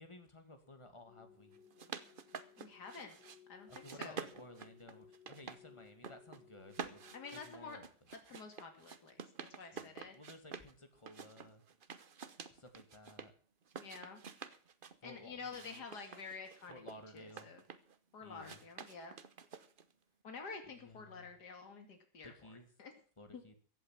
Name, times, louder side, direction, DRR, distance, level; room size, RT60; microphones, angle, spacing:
voice 1, 0.0-1.6 3.7-7.8 9.6-11.6 12.5-13.3 15.0-16.4 16.7-17.5 18.2-18.6 20.7-21.3 22.2-22.7 23.2-23.5, left 1 dB, 15° left, 7 dB, 2.0 m, -56 dB
sound 1, 1.1-7.5, left 8 dB, 80° left, 3.1 m, -62 dB
sound 2, 1.5-3.4 3.7-5.6 5.9-6.4 6.7-10.7 11.1-13.3 13.7-15.0 15.4-18.0 18.4-19.9, right 6 dB, 40° right, 0.8 m, -49 dB
voice 2, 2.6-3.2 3.5-4.2 7.1-7.8 8.1-9.2 9.6-10.2 13.8-14.2 15.0-16.8 17.1-17.6 18.1-19.2 20.2-22.3 22.8-22.9 23.3-23.4, left 4 dB, 65° left, 5 dB, 3.0 m, -49 dB
15.5 x 8.5 x 7.3 m, 0.43 s
omnidirectional pair, 1.9 m